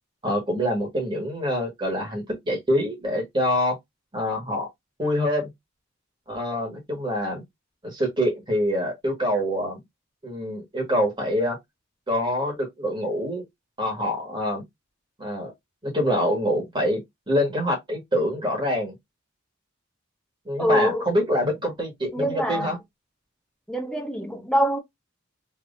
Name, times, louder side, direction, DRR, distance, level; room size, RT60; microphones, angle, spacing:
voice 1, 0.2-3.8 4.1-4.7 5.0-5.5 6.3-7.4 7.8-9.8 10.2-11.6 12.1-13.4 13.8-14.6 15.2-15.5 15.8-17.0 17.3-18.9 20.4-22.8, equal, 25° right, 1.6 m, -25 dB
voice 2, 20.6-21.1 22.1-22.8 23.7-24.8, equal, 5° left, 0.8 m, -24 dB
3.3 x 3.1 x 2.6 m
head